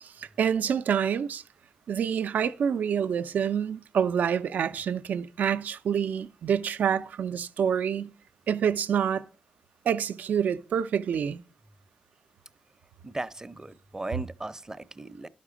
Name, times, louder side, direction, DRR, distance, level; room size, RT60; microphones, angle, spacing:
voice 1, 0.0-1.4 1.9-8.1 8.5-9.2 9.9-11.4, right 8 dB, 75° right, 0.4 m, -27 dB
voice 2, 13.0-15.3, right 2 dB, 20° right, 0.6 m, -37 dB
11.0 x 5.8 x 4.9 m
cardioid pair, 70°, 3 cm